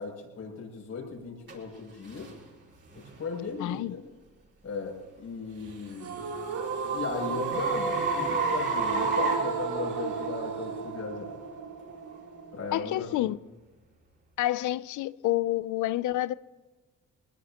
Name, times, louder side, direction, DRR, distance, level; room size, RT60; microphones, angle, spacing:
voice 1, 0.0-2.3 3.2-4.0 4.6-6.2 6.9-11.4 12.5-13.2, left 4 dB, 60° left, 7.3 m, -37 dB
sound 1, 1.5-1.6 2.2-2.4 3.0-3.2 5.8-10.3, right 3 dB, 40° right, 5.0 m, -31 dB
voice 2, 3.6-3.9 12.7-13.4 14.4-16.4, left 15 dB, 80° left, 0.6 m, -28 dB
sound 2, 6.0-13.0, right 5 dB, 70° right, 3.4 m, -33 dB
22.0 x 21.0 x 3.0 m
cardioid pair, 90°, 30 cm